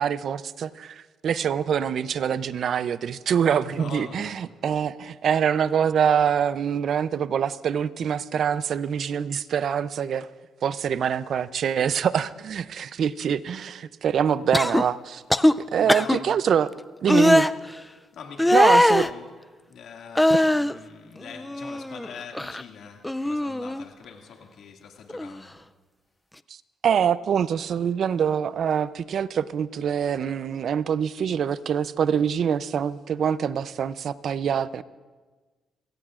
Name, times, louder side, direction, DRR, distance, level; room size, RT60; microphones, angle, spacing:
voice 1, 0.0-10.3 10.6-15.2 15.7-16.7 17.0-17.5 18.5-19.0 20.3-20.4 26.5-26.6 26.8-34.8, right 8 dB, 60° right, 16 dB, 0.5 m, -25 dB
voice 2, 3.6-4.4 15.6-16.4 17.1-17.3 17.7-19.3 19.7-25.6, left 6 dB, 70° left, 1 dB, 2.2 m, -43 dB
sound 1, 14.5-14.8 15.3-15.5 15.9-16.2 17.1-17.5 18.4-19.1 20.1-20.7 21.2-22.1 22.3-22.6 23.0-23.8 25.1-25.3, left 1 dB, 5° left, 0.4 m, -20 dB
29.0 x 17.0 x 2.5 m, 1.3 s
cardioid pair, 90°, 0 cm